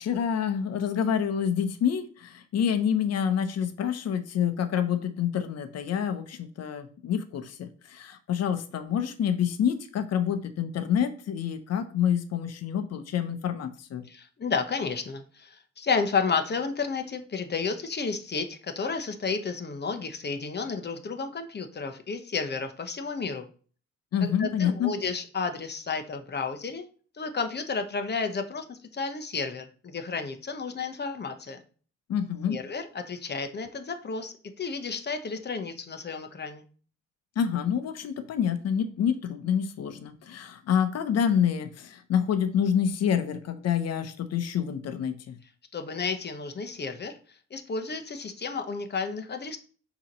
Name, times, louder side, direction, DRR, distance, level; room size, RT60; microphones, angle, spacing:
voice 1, 0.0-14.0 24.1-24.9 32.1-32.6 37.4-45.3, left 8 dB, 55° left, 8 dB, 0.8 m, -27 dB
voice 2, 14.0-23.5 24.2-26.8 27.1-31.6 32.5-36.6 45.7-49.6, left 5 dB, 35° left, 7 dB, 1.0 m, -32 dB
7.0 x 3.0 x 5.3 m, 0.41 s
cardioid pair, 90°, 30 cm